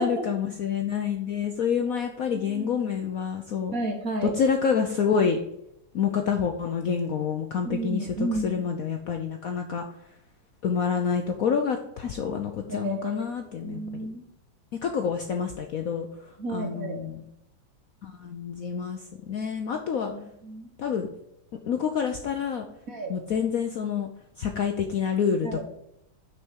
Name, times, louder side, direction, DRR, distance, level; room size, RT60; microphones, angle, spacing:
voice 1, 0.0-3.7 4.2-5.4 5.9-8.1 8.4-9.8 10.6-13.8 14.7-17.2 18.0-20.1 20.8-21.1 21.7-22.6 23.1-24.1 24.4-25.6, left 6 dB, 60° left, 4 dB, 0.9 m, -27 dB
voice 2, 2.3-2.7 3.7-4.3 7.6-8.6 12.7-13.2 13.6-14.2 16.4-17.0 20.0-20.7 22.9-23.1 25.4-25.6, right 2 dB, 50° right, 3 dB, 1.6 m, -32 dB
6.5 x 5.7 x 6.3 m, 0.78 s
omnidirectional pair, 2.2 m